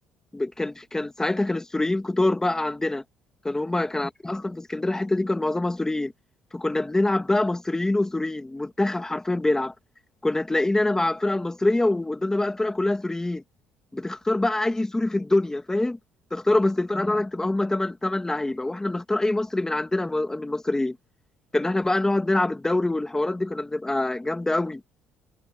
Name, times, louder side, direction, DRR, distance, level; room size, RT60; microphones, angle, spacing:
voice 1, 0.3-3.0 3.4-6.1 6.5-9.7 10.2-13.4 13.9-16.0 16.3-21.0 21.5-24.8, left 2 dB, 10° left, 1.8 m, -25 dB
cardioid pair, 115°, 5 cm